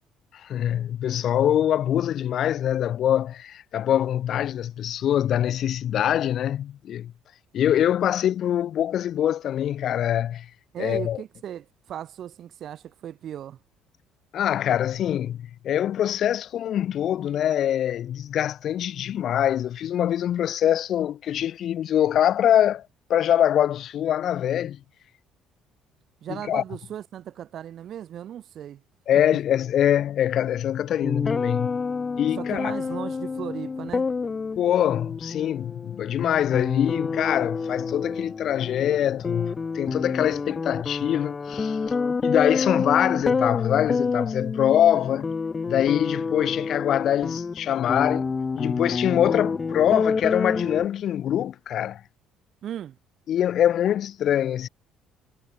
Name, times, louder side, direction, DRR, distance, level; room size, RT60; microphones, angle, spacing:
voice 1, 0.3-7.1 7.5-10.5 10.8-11.2 14.3-22.8 23.1-24.8 26.3-26.6 29.1-31.7 32.2-32.7 34.6-41.8 42.2-45.3 45.7-48.3 48.6-52.0 53.3-54.7, left 10 dB, 60° left, 0.9 m, -24 dB
voice 2, 10.7-13.6 26.2-28.8 32.4-34.1 52.6-53.0, right 10 dB, 55° right, 2.1 m, -36 dB
sound 1, 31.0-50.9, left 4 dB, 30° left, 1.2 m, -28 dB
cardioid pair, 100°, 0 cm